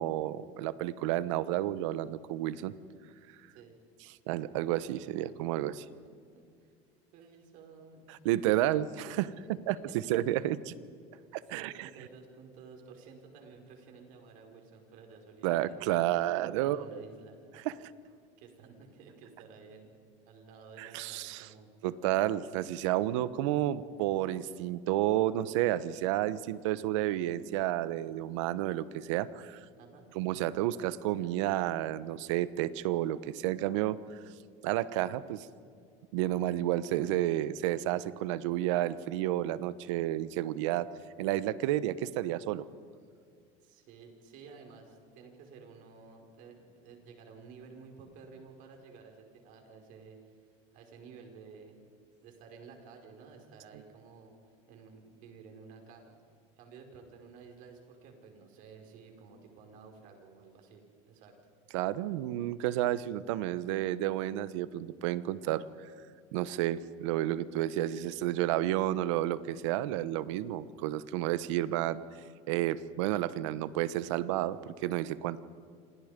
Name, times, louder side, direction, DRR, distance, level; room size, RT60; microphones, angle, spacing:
voice 1, 0.0-2.7 4.3-5.8 8.1-9.3 9.7-10.7 11.3-11.9 15.4-17.0 17.6-17.9 20.8-21.5 21.8-29.6 30.1-34.0 34.6-35.5 36.1-40.9 41.2-42.6 61.7-65.6 66.3-72.0 72.5-75.4, right 13 dB, 85° right, 16 dB, 1.1 m, -31 dB
voice 2, 6.3-6.7 7.1-8.0 9.4-10.1 10.4-10.5 11.5-15.9 16.6-17.4 18.4-20.0 20.2-21.7 29.8-30.1 43.6-50.2 50.7-51.7 52.2-54.3 54.7-56.2 56.6-61.4, right 5 dB, 60° right, 3 dB, 5.5 m, -53 dB
28.5 x 26.5 x 5.3 m, 2.2 s
supercardioid pair, 125°, 15 cm